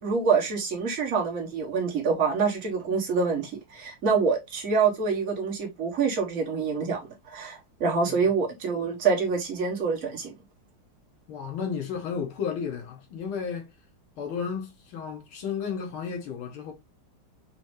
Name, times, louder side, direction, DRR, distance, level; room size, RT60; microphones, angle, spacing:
voice 1, 0.0-10.3, right 5 dB, 45° right, 1.5 m, -26 dB
voice 2, 11.3-13.7 14.2-16.7, left 6 dB, 90° left, 2.0 m, -33 dB
5.1 x 2.7 x 3.1 m
omnidirectional pair, 2.3 m